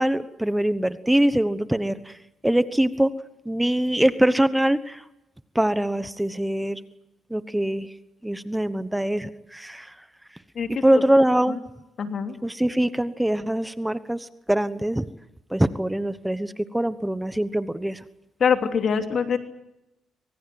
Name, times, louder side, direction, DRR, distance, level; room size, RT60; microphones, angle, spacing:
voice 1, 0.0-2.2 2.4-3.1 3.4-5.0 5.5-6.8 7.3-7.9 8.2-9.9 10.8-11.6 12.4-15.0 15.5-18.0, right 1 dB, 5° right, 13 dB, 1.1 m, -23 dB
voice 2, 10.5-11.0 11.5-11.6 12.0-12.4 18.4-19.4, left 6 dB, 55° left, 6 dB, 3.0 m, -24 dB
25.5 x 22.5 x 7.8 m, 0.90 s
cardioid pair, 90°, 0 cm